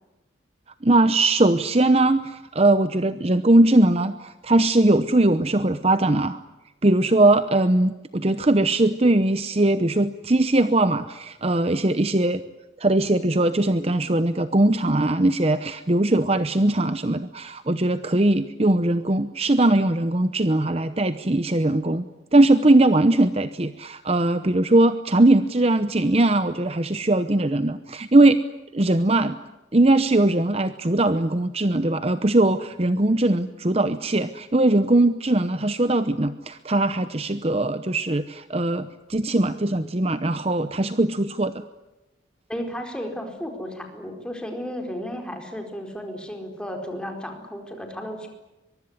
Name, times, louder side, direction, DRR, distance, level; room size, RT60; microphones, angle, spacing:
voice 1, 0.8-6.4 6.8-12.4 12.8-22.0 22.3-28.4 28.7-29.4 29.7-41.6, right 2 dB, 30° right, 11 dB, 0.8 m, -20 dB
voice 2, 42.5-48.3, equal, 5° left, 3 dB, 4.5 m, -33 dB
23.5 x 23.5 x 9.7 m, 1.0 s
head